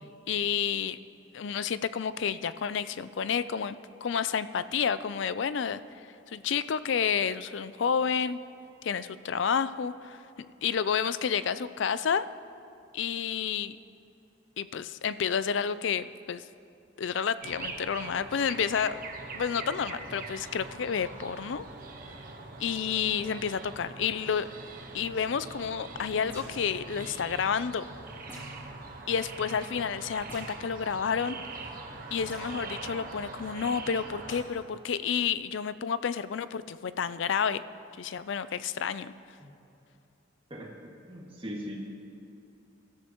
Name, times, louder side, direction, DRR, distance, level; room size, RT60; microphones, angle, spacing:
voice 1, 0.3-1.0 1.3-5.8 6.3-8.4 8.8-12.3 12.9-13.8 14.6-16.4 17.0-19.0 19.3-21.7 22.6-24.5 24.9-27.8 29.1-31.4 32.1-37.6 38.0-39.1, left 7 dB, 65° left, 14 dB, 0.4 m, -30 dB
sound 1, 17.4-34.4, right 3 dB, 45° right, 1.2 m, -43 dB
sound 2, 26.3-26.7 28.3-28.7 30.3-30.6 32.3-32.5 34.3-34.5, equal, 10° left, 3.5 m, -46 dB
voice 2, 40.5-41.8, equal, 25° right, -3 dB, 2.1 m, -40 dB
22.0 x 13.5 x 3.0 m, 2.7 s
head